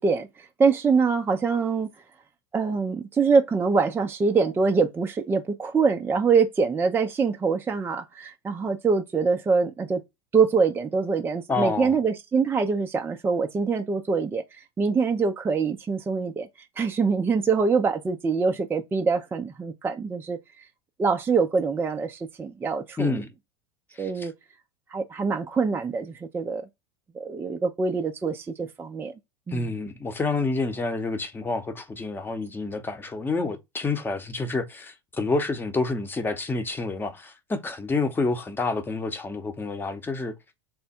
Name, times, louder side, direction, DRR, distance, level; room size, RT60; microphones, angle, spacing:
voice 1, 0.0-1.9 2.5-10.0 10.3-14.4 14.8-16.5 16.8-20.4 21.0-23.2 24.0-24.3 24.9-26.7 27.1-29.1 29.5-29.7, right 5 dB, 15° right, 0.5 m, -24 dB
voice 2, 11.5-11.9 23.0-23.3 24.0-24.3 29.5-40.3, left 3 dB, 15° left, 0.9 m, -28 dB
3.5 x 2.1 x 4.2 m
hypercardioid pair, 85°, 15 cm